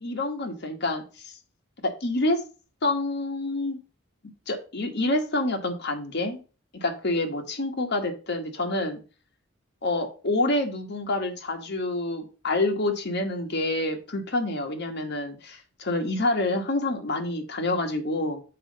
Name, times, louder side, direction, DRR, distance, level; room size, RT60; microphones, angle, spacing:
voice 1, 0.0-1.3 1.8-2.4 2.8-3.8 4.5-6.4 6.7-9.0 9.8-18.4, left 2 dB, 60° left, 3 dB, 1.5 m, -27 dB
7.5 x 3.8 x 5.2 m, 0.34 s
head